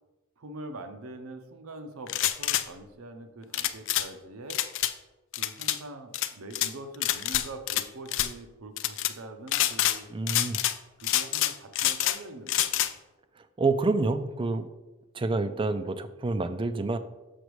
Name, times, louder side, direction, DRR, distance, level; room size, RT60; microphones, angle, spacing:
voice 1, 0.4-4.6 5.4-10.1 11.0-12.9 15.4-15.8, right 2 dB, 75° right, 7 dB, 0.7 m, -44 dB
sound 1, 2.1-2.6 3.5-4.1 4.5-4.9 5.3-5.8 6.1-6.7 7.0-8.3 8.8-9.1 9.5-10.0 10.3-10.8 11.0-12.2 12.5-12.9, left 13 dB, 60° left, 0.4 m, -26 dB
voice 2, 10.1-10.6 13.6-14.7 15.1-17.0, right 3 dB, 25° right, 10 dB, 0.3 m, -28 dB
6.5 x 6.0 x 3.1 m, 1.1 s
head